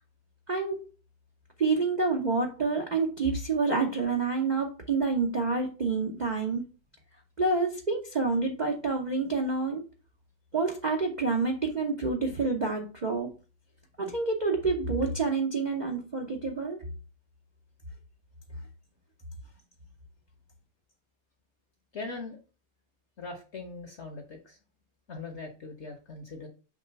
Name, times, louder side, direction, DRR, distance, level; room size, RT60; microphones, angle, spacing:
voice 1, 0.5-0.8 1.6-6.6 7.4-9.8 10.5-13.3 14.0-16.9, right 4 dB, 70° right, 2 dB, 0.4 m, -28 dB
voice 2, 21.9-22.4 23.2-24.6 25.1-26.5, left 3 dB, 50° left, 5 dB, 0.9 m, -40 dB
6.6 x 3.1 x 5.3 m, 0.34 s
omnidirectional pair, 2.2 m